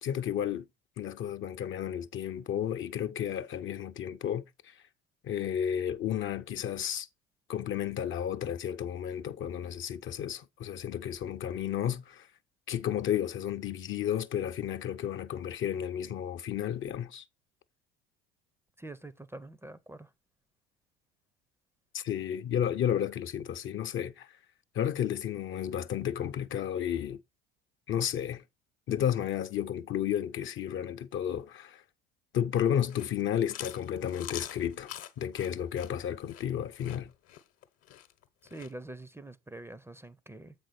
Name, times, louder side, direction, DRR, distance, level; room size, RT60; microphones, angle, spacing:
voice 1, 0.0-0.7 1.0-4.7 5.2-7.1 7.5-12.3 12.7-17.2 21.9-24.4 24.7-27.2 27.9-28.4 28.9-31.8 32.3-34.9 35.2-37.1, left 9 dB, 40° left, 0.7 m, -32 dB
voice 2, 18.8-20.1 38.4-40.5, right 2 dB, 10° right, 0.6 m, -45 dB
Chewing mastication, 32.7-38.7, left 12 dB, 55° left, 1.0 m, -45 dB
7.6 x 5.2 x 4.2 m
hypercardioid pair, 70°, 30 cm